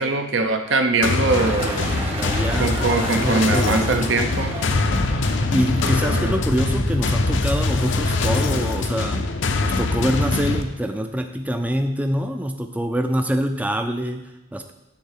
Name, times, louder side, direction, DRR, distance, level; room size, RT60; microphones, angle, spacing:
voice 1, 0.0-1.9 2.6-4.5 6.1-6.3, right 3 dB, 70° right, 6 dB, 0.8 m, -22 dB
sound 1, 1.0-10.6, left 3 dB, 70° left, 0.7 m, -24 dB
sound 2, 1.3-6.4, right 1 dB, 30° right, 1.1 m, -32 dB
voice 2, 1.6-4.1 5.3-9.3 9.6-14.7, equal, 10° right, 5 dB, 0.4 m, -25 dB
sound 3, 4.7-8.9, left 1 dB, 35° left, 0.7 m, -26 dB
10.0 x 3.7 x 7.3 m, 0.95 s
head